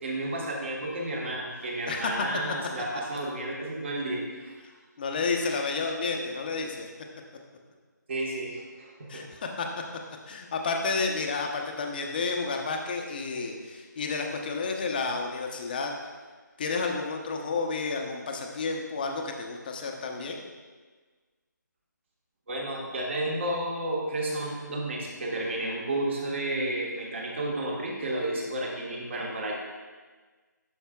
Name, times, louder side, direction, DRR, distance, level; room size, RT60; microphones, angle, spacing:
voice 1, 0.0-4.6 8.1-9.2 22.5-29.6, right 1 dB, 40° right, -2 dB, 1.5 m, -32 dB
voice 2, 1.9-2.3 5.0-6.9 9.1-9.7 10.3-15.9 16.6-20.4, left 4 dB, 30° left, 2 dB, 0.7 m, -31 dB
10.5 x 6.4 x 2.3 m, 1.4 s
figure-of-eight pair, 160°, 10 cm